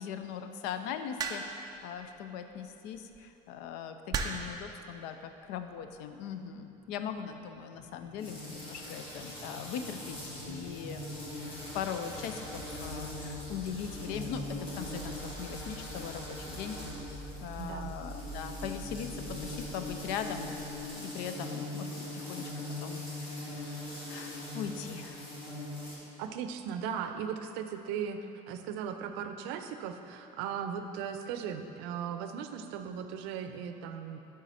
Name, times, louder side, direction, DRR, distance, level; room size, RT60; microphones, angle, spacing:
voice 1, 0.0-20.6 20.9-22.5 22.8-25.3, left 8 dB, 75° left, 8 dB, 0.5 m, -40 dB
sound 1, 1.2-1.7 2.9-3.2 4.1-4.6 5.6-5.9, right 5 dB, 25° right, 0.3 m, -34 dB
sound 2, 5.2-20.9, right 1 dB, 5° right, 1.1 m, -48 dB
sound 3, 8.2-26.0, left 1 dB, 35° left, 1.5 m, -41 dB
voice 2, 17.6-17.9 26.2-28.2 28.5-34.2, right 8 dB, 90° right, 7 dB, 0.5 m, -37 dB
9.1 x 3.7 x 4.2 m, 2.9 s
cardioid pair, 175°, 17 cm